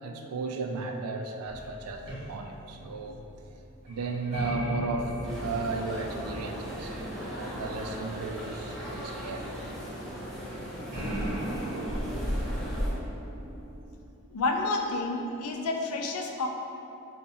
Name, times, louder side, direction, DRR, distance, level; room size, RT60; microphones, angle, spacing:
voice 1, 0.0-3.2 3.8-9.5, right 3 dB, 90° right, 4 dB, 0.3 m, -35 dB
sound 1, 1.4-13.8, right 1 dB, 30° right, 0.8 m, -40 dB
sound 2, 5.2-12.9, equal, ahead, 0.5 m, -36 dB
voice 2, 14.3-16.5, left 3 dB, 80° left, 3 dB, 0.4 m, -29 dB
3.9 x 2.2 x 3.7 m, 2.9 s
head